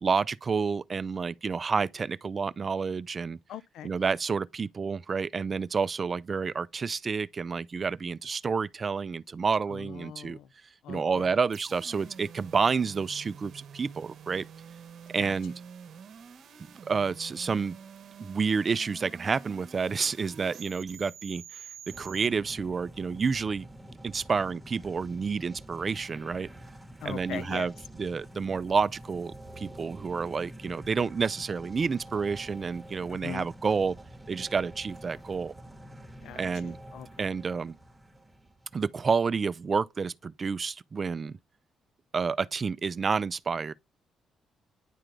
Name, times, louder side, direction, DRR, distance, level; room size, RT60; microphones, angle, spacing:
voice 1, 0.0-3.4 3.8-10.4 10.9-14.4 15.1-15.5 16.9-17.8 18.2-21.6 22.0-23.7 24.0-26.5 27.0-27.7 28.0-34.0 34.3-35.5 36.4-36.8 37.2-37.7 38.7-41.4 42.1-43.7, right 5 dB, 40° right, 0.4 m, -29 dB
voice 2, 3.5-3.9 9.7-10.5 10.8-11.4 11.9-12.0 15.2-15.3 27.0-27.7 33.1-33.5 36.2-37.3, left 10 dB, 80° left, 0.4 m, -41 dB
sound 1, 11.5-22.3, right 7 dB, 65° right, 0.9 m, -48 dB
sound 2, 21.9-39.0, right 1 dB, 5° right, 1.2 m, -47 dB
10.0 x 3.8 x 3.3 m
cardioid pair, 90°, 0 cm